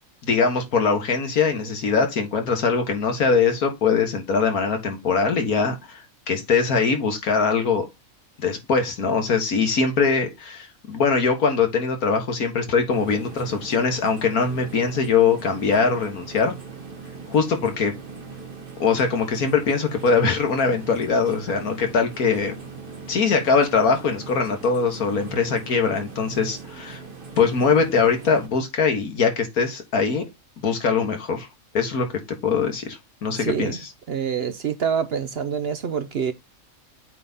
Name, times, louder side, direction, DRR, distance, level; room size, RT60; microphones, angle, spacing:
voice 1, 0.2-7.9 8.4-16.5 17.3-17.9 18.8-22.5 23.1-27.0 27.4-30.2 30.6-31.5 31.7-32.1 32.4-33.9, left 5 dB, 90° left, 2.0 m, -22 dB
sound 1, 12.9-28.5, right 4 dB, 40° right, 1.5 m, -40 dB
voice 2, 33.4-33.8 34.1-36.3, right 7 dB, 55° right, 0.7 m, -26 dB
8.3 x 3.6 x 4.1 m
omnidirectional pair, 1.5 m